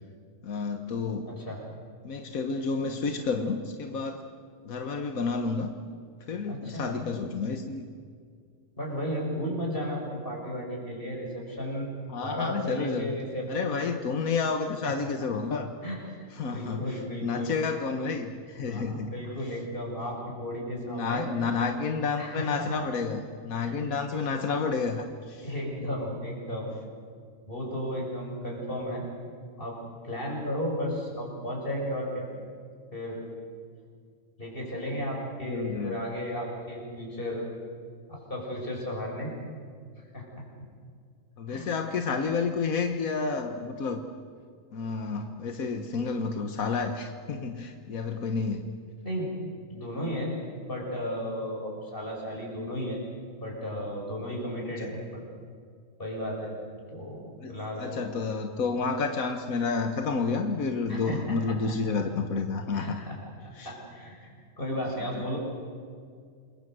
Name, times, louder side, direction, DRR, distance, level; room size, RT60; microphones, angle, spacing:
voice 1, 0.4-1.3 2.0-4.3 4.6-5.7 6.3-7.8 12.1-13.1 13.5-15.7 16.3-19.1 20.9-25.5 35.5-36.0 41.4-44.0 44.7-48.6 54.8-54.9 57.4-63.1 63.6-63.7, left 4 dB, 85° left, 6 dB, 1.6 m, -30 dB
voice 2, 1.2-1.6 6.5-7.0 8.8-11.9 12.2-13.9 14.8-15.1 15.8-16.3 16.5-17.5 18.6-21.3 22.2-22.9 23.6-23.8 25.4-26.7 27.4-29.1 29.6-29.8 30.0-32.3 32.9-33.2 34.4-37.4 38.1-39.3 40.1-40.2 41.5-41.7 49.0-49.3 49.7-50.4 50.7-53.0 53.4-55.2 56.0-56.5 56.9-58.0 60.9-61.6 62.7-63.2 63.6-64.3 64.6-65.4, equal, 40° left, -2 dB, 6.6 m, -34 dB
28.0 x 22.0 x 7.9 m, 2.2 s
omnidirectional pair, 1.4 m